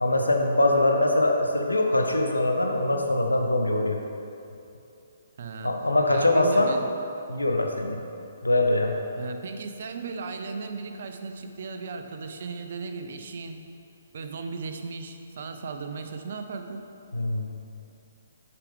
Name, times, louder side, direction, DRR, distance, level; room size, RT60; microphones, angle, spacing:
voice 1, 0.0-4.0 5.6-6.7 7.3-8.0 8.4-8.9 17.1-17.5, left 2 dB, 90° left, 3 dB, 0.6 m, -23 dB
voice 2, 5.4-5.7 6.1-6.9 9.2-13.6 14.1-16.9, right 4 dB, 55° right, 6 dB, 0.5 m, -36 dB
6.7 x 4.9 x 3.5 m, 2.7 s
figure-of-eight pair, 130°, 0 cm